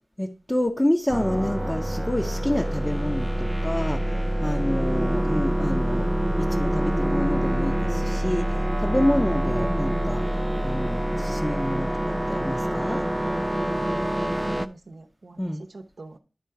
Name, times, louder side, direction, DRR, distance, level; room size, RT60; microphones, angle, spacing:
voice 1, 0.2-6.1 6.4-10.3 10.6-13.0 15.4-15.6, left 1 dB, 15° left, 0.7 m, -28 dB
sound 1, 1.1-14.7, right 1 dB, 10° right, 0.4 m, -26 dB
voice 2, 14.4-16.2, right 2 dB, 75° right, 0.8 m, -45 dB
10.5 x 3.7 x 5.7 m
wide cardioid pair, 85°, 0 cm